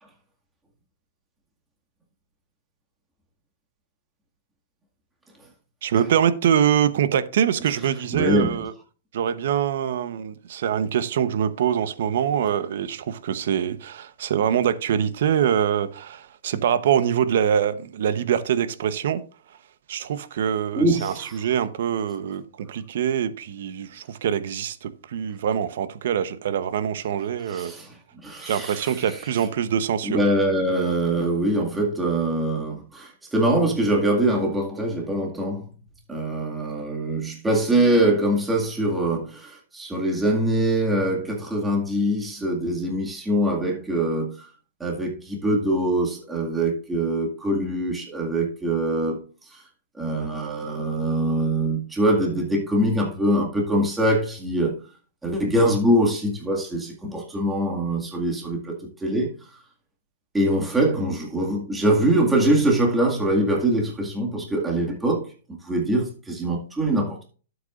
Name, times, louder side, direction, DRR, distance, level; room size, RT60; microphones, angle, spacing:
voice 1, 5.8-8.7 9.1-19.2 19.9-27.7 28.5-30.2, right 9 dB, 65° right, 0.9 m, -24 dB
voice 2, 8.1-8.6 20.8-21.4 27.5-28.0 28.2-29.2 30.0-35.7 36.1-44.5 44.8-49.2 49.5-49.6 50.0-54.7 55.2-59.3 60.3-65.3 65.6-67.2, right 1 dB, 10° right, 2.0 m, -23 dB
12.5 x 8.1 x 2.5 m
hypercardioid pair, 150°, 0 cm